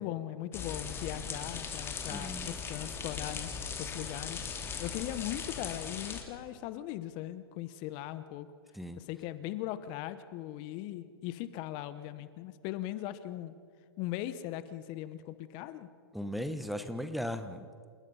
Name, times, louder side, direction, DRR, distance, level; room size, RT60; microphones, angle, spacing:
voice 1, 0.0-3.5 3.8-4.4 4.8-8.5 9.0-13.5 14.0-15.9, left 13 dB, 40° left, 13 dB, 1.0 m, -39 dB
sound 1, 0.5-6.2, left 6 dB, 20° left, 2.6 m, -39 dB
voice 2, 2.1-2.6 8.7-9.0 16.1-17.7, equal, ahead, 8 dB, 1.1 m, -37 dB
28.5 x 18.5 x 5.6 m, 2.1 s
hypercardioid pair, 120°, 13 cm